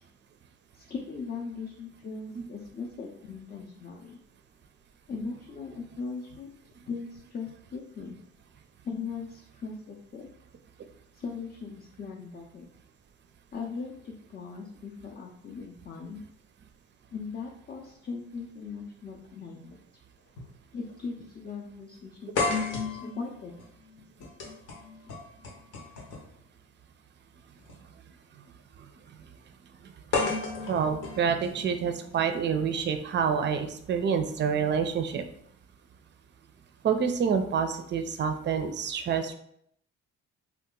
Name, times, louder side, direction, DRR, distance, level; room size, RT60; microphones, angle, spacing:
voice 1, 0.8-4.2 5.1-6.5 6.9-8.2 8.8-10.3 11.1-12.7 13.5-16.2 17.1-19.8 20.7-22.4 23.0-23.5, left 5 dB, 30° left, -1 dB, 0.5 m, -39 dB
sound 1, 19.1-19.2 20.4-20.5 20.9-21.0 22.4-26.4 27.6-27.7 30.1-32.1, left 4 dB, 80° left, 0.9 m, -33 dB
voice 2, 30.7-35.2 36.8-39.3, right 6 dB, 35° right, 7 dB, 0.4 m, -27 dB
2.8 x 2.4 x 3.7 m, 0.70 s
cardioid pair, 90°, 30 cm